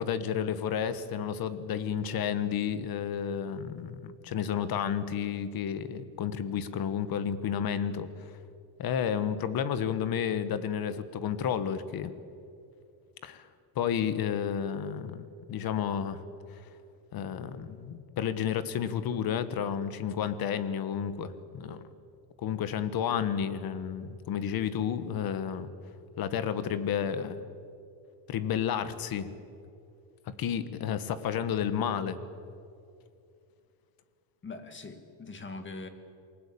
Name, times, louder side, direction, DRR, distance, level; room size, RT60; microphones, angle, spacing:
voice 1, 0.0-8.1 8.8-12.1 13.2-13.5 13.7-16.2 17.1-21.9 22.4-25.7 26.2-27.5 28.3-29.3 30.3-32.2, left 8 dB, 45° left, 12 dB, 1.7 m, -31 dB
voice 2, 34.4-35.9, left 3 dB, 25° left, 8 dB, 2.3 m, -42 dB
28.0 x 21.0 x 8.6 m, 2.5 s
cardioid pair, 145°, 48 cm